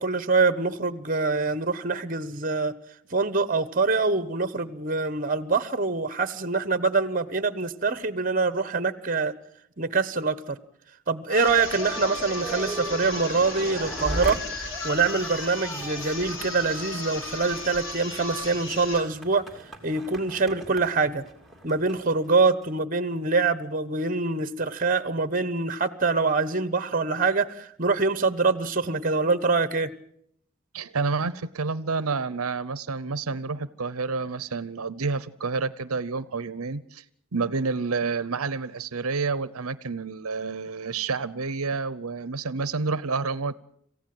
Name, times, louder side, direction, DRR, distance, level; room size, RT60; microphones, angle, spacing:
voice 1, 0.0-2.7 3.1-9.3 9.8-10.6 11.1-14.4 14.8-19.4 19.8-21.2 21.6-29.9, right 4 dB, 40° right, 15 dB, 1.1 m, -25 dB
sound 1, 11.3-19.1, left 2 dB, 60° left, 4.0 m, -35 dB
sound 2, 11.4-22.7, equal, ahead, 2.6 m, -39 dB
voice 2, 30.7-37.0 37.3-43.6, right 4 dB, 80° right, 17 dB, 0.8 m, -29 dB
27.0 x 15.5 x 7.7 m, 0.69 s
head